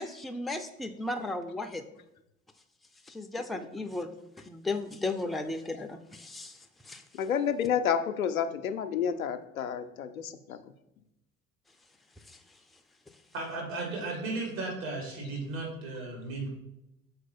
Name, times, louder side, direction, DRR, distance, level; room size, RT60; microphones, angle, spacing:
voice 1, 0.0-1.8 3.1-4.1 4.5-6.5 6.9-7.0, left 2 dB, ahead, 7 dB, 0.4 m, -35 dB
voice 2, 3.5-3.9 5.7-5.8 7.1-10.7, left 8 dB, 80° left, 9 dB, 0.6 m, -30 dB
voice 3, 13.3-16.5, right 3 dB, 70° right, -1 dB, 2.1 m, -35 dB
6.7 x 4.6 x 4.2 m, 0.86 s
figure-of-eight pair, 60°, 41 cm